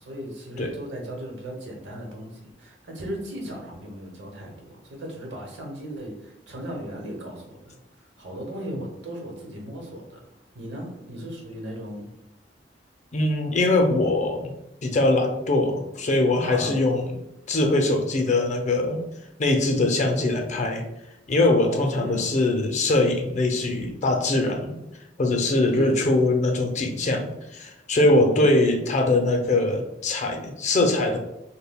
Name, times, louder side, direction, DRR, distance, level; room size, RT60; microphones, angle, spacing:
voice 1, 0.0-10.2 10.5-12.1 16.4-16.8 21.6-22.3 25.7-25.9 28.1-28.5, right 1 dB, 80° right, 0 dB, 1.0 m, -37 dB
voice 2, 13.1-14.5 14.8-17.1 17.5-19.0 19.4-20.8 21.3-24.8 25.2-31.2, left 2 dB, 40° left, 3 dB, 0.5 m, -22 dB
5.3 x 2.2 x 2.2 m, 0.88 s
head